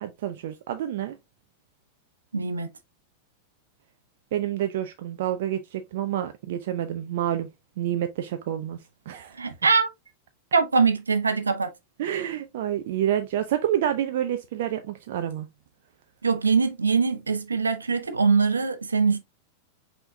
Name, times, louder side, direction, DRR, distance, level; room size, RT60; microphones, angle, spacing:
voice 1, 0.0-1.1 4.3-7.5 7.8-8.8 9.1-9.4 12.0-15.5, right 11 dB, 55° right, 0.5 m, -28 dB
voice 2, 2.3-2.7 9.4-9.9 10.5-11.7 16.2-19.2, right 5 dB, 80° right, 0.8 m, -22 dB
5.4 x 4.3 x 2.3 m
figure-of-eight pair, 90°, 0 cm